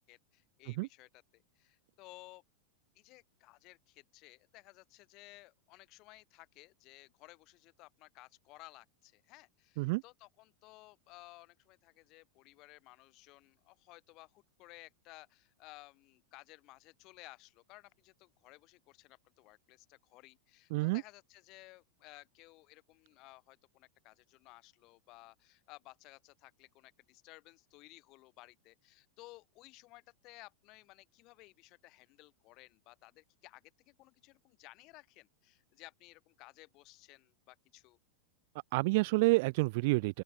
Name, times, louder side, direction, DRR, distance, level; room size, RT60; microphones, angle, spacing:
voice 1, 0.0-2.4 2.9-38.0, left 21 dB, 40° left, 4.8 m, -57 dB
voice 2, 20.7-21.0 38.7-40.2, right 24 dB, 50° right, 1.0 m, -28 dB
open air
figure-of-eight pair, 90°, 0 cm